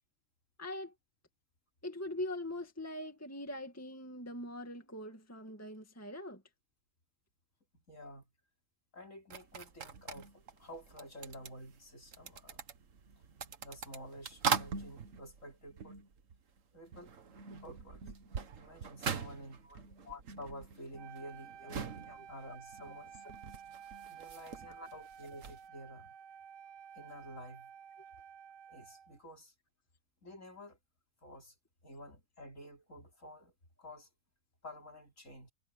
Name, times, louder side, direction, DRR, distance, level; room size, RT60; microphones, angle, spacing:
voice 1, 0.6-0.9 1.8-6.4 19.6-19.8 21.6-21.8 22.1-22.3 24.6-24.9, left 1 dB, 10° left, 2.0 m, -42 dB
voice 2, 7.9-8.3 8.9-12.6 13.6-16.0 16.7-17.1 17.6-18.1 18.6-19.7 20.0-23.2 24.1-26.2 27.0-27.7 28.7-29.5 30.2-30.8 31.2-31.6 31.8-33.5 33.8-34.1 34.6-35.5, equal, 50° left, 5.2 m, -50 dB
sound 1, 9.3-16.6 16.9-25.7, right 6 dB, 50° right, 1.6 m, -42 dB
Wind instrument woodwind instrument, 20.9-29.2, right 8 dB, 85° right, 1.5 m, -52 dB
omnidirectional pair, 1.8 m